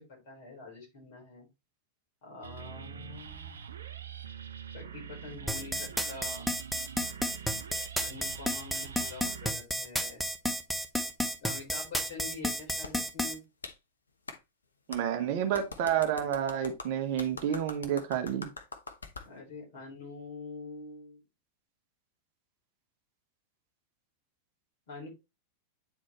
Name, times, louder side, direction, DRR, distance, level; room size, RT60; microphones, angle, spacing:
voice 1, 0.0-1.5 2.2-3.8 4.7-6.5 8.0-10.2 11.4-13.4 19.2-21.2 24.9-25.1, left 3 dB, 50° left, 4.0 m, -45 dB
sound 1, 2.4-9.5, right 8 dB, 70° right, 0.6 m, -45 dB
sound 2, 5.5-13.3, equal, ahead, 0.9 m, -31 dB
Clapping, 12.0-12.1 12.8-12.9 13.6-13.8 14.3-14.4 14.9-15.0 15.5-19.3, left 3 dB, 75° left, 0.9 m, -43 dB
voice 2, 14.9-18.5, right 9 dB, 50° right, 1.0 m, -30 dB
9.1 x 4.3 x 3.0 m
figure-of-eight pair, 90°, 0 cm